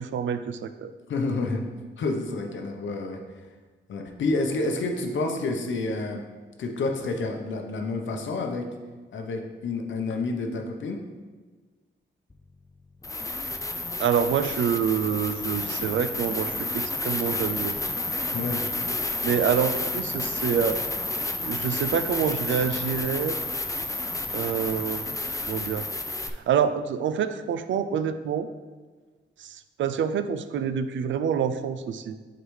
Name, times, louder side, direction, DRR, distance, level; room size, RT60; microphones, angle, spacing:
voice 1, 0.0-0.9 14.0-17.7 19.0-20.8 21.4-23.4 24.3-25.1 25.5-25.9 26.5-28.5 29.4-32.2, right 7 dB, 80° right, 11 dB, 0.4 m, -27 dB
voice 2, 1.1-1.6 2.0-3.2 3.9-6.2 6.6-8.7 9.1-11.0 18.3-18.6, left 3 dB, 85° left, 3 dB, 0.8 m, -29 dB
sound 1, 12.3-12.4 13.0-26.3, left 2 dB, 15° left, 0.4 m, -30 dB
8.1 x 3.9 x 3.2 m, 1.4 s
cardioid pair, 95°, 19 cm